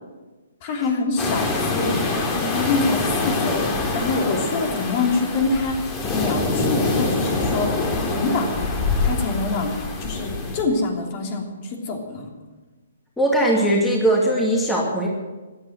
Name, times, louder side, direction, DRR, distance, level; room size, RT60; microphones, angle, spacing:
voice 1, 0.6-12.3, left 3 dB, 35° left, 2 dB, 3.3 m, -26 dB
sound 1, 1.2-10.6, left 3 dB, 20° left, 3.0 m, -25 dB
voice 2, 13.2-15.1, right 1 dB, 5° left, -2 dB, 2.6 m, -19 dB
15.5 x 11.0 x 8.1 m, 1.2 s
hypercardioid pair, 145°, 0 cm